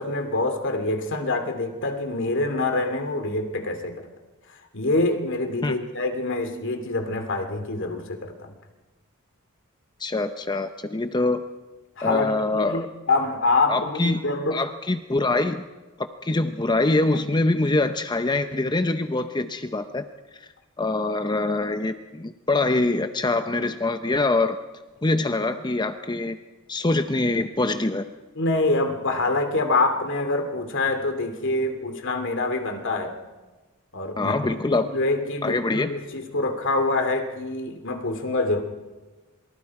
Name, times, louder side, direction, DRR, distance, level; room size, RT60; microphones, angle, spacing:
voice 1, 0.0-4.1 4.5-8.5 12.0-14.6 28.4-33.2 33.9-38.6, left 2 dB, 60° left, 6 dB, 2.8 m, -26 dB
voice 2, 10.0-11.4 12.0-12.9 13.7-14.2 14.5-15.7 16.0-20.0 20.3-20.5 20.8-24.6 25.0-26.4 26.7-28.1 34.2-34.9 35.4-35.9, left 2 dB, 20° left, 8 dB, 0.7 m, -24 dB
27.5 x 23.5 x 4.9 m, 1.2 s
head